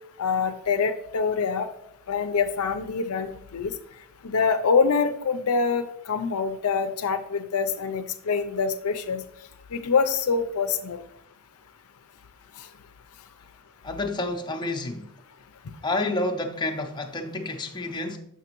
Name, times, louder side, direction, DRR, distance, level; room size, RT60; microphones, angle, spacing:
voice 1, 0.2-1.7 2.1-3.7 4.2-9.2 9.7-11.0, left 5 dB, 70° left, 0.5 m, -25 dB
voice 2, 13.8-15.1 15.8-18.2, left 2 dB, 20° left, 0.6 m, -29 dB
7.0 x 5.8 x 3.0 m
head